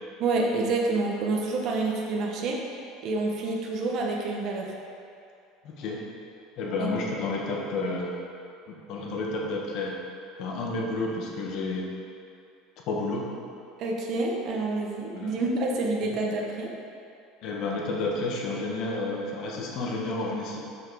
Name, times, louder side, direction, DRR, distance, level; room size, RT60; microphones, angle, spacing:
voice 1, 0.2-2.6 3.0-4.7 13.8-16.7, right 3 dB, 45° right, -1 dB, 0.9 m, -28 dB
voice 2, 5.6-6.0 6.6-8.1 8.7-9.9 10.4-11.9 12.9-13.3 15.1-15.3 17.4-20.7, left 2 dB, 50° left, -1 dB, 1.2 m, -30 dB
6.3 x 6.1 x 4.7 m, 2.5 s
cardioid pair, 155°, 0 cm